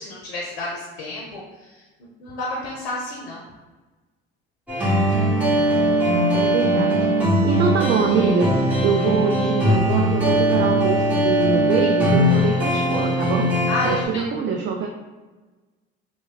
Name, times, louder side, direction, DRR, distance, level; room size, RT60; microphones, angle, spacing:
voice 1, 0.0-1.8 2.2-3.4 13.7-14.2, left 2 dB, 85° left, -4 dB, 0.6 m, -30 dB
sound 1, 4.7-14.1, equal, 5° right, 1.2 m, -20 dB
voice 2, 6.3-7.1 7.4-8.6 8.8-13.5 13.8-14.9, right 5 dB, 40° right, 1 dB, 0.4 m, -24 dB
3.0 x 2.1 x 3.5 m, 1.3 s
hypercardioid pair, 60°, 30 cm